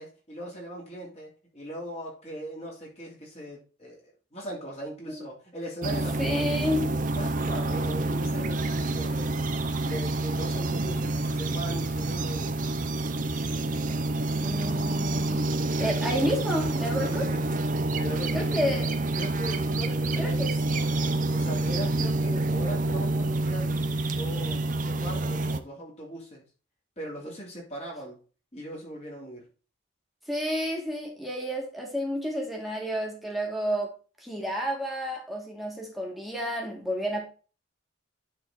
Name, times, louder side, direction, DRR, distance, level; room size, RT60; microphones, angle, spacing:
voice 1, 0.0-6.7 7.1-9.3 9.8-12.6 17.1-17.6 17.9-18.7 19.2-20.6 21.3-23.8 24.1-26.4 27.0-28.2 28.5-29.5, right 1 dB, 35° left, -2 dB, 2.9 m, -39 dB
sound 1, 5.8-25.6, right 2 dB, 40° right, 0.6 m, -28 dB
voice 2, 6.2-6.9 14.3-15.5 15.8-17.3 18.3-18.9 20.2-20.9 30.3-33.9 34.2-37.2, equal, ahead, -1 dB, 2.0 m, -30 dB
10.0 x 4.3 x 3.9 m, 0.35 s
head